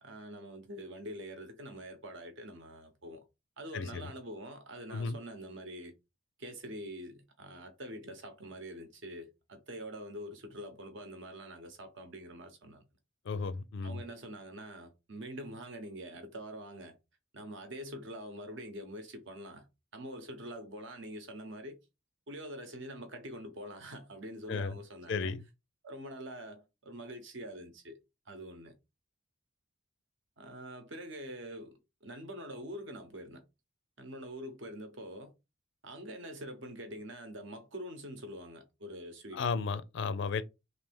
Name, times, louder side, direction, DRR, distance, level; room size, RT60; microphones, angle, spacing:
voice 1, 0.0-3.2 3.6-5.9 6.4-12.9 13.8-17.0 17.3-19.7 19.9-21.8 22.3-25.3 25.8-28.0 28.3-28.7 30.4-33.4 34.0-35.3 35.8-39.5, equal, 60° right, 0.9 m, -45 dB
voice 2, 3.7-4.1 4.9-5.2 13.3-14.0 24.5-24.8 25.1-25.4 39.3-40.4, left 4 dB, 60° left, 0.4 m, -34 dB
3.3 x 2.7 x 3.5 m
head